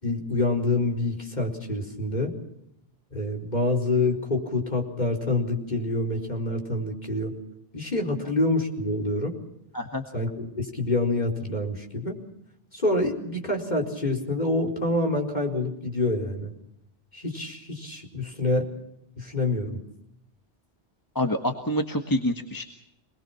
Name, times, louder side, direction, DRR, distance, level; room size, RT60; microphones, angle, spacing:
voice 1, 0.0-2.3 3.1-7.3 7.7-9.4 10.1-12.2 12.7-16.5 17.1-18.7 19.2-19.8, left 2 dB, 40° left, 1 dB, 4.6 m, -27 dB
voice 2, 21.1-22.6, left 1 dB, 15° left, 4 dB, 1.6 m, -27 dB
26.5 x 21.0 x 5.8 m, 0.80 s
omnidirectional pair, 1.2 m